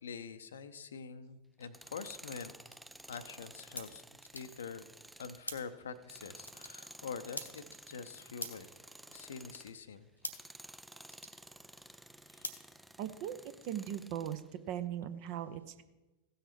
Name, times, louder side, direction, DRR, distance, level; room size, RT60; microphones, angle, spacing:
voice 1, 0.0-2.5 3.1-4.0 4.3-4.8 5.2-8.7 9.1-10.1 12.3-12.5, left 6 dB, 65° left, 12 dB, 0.6 m, -45 dB
Tools, 1.6-9.8 10.2-14.5, right 1 dB, 5° right, 0.3 m, -54 dB
sound 1, 1.9-13.4, left 2 dB, 85° left, 1.1 m, -50 dB
voice 2, 13.0-13.4 13.6-14.4 14.7-15.8, right 10 dB, 45° right, 11 dB, 0.6 m, -38 dB
16.0 x 6.5 x 4.5 m, 1.1 s
figure-of-eight pair, 90°, 0 cm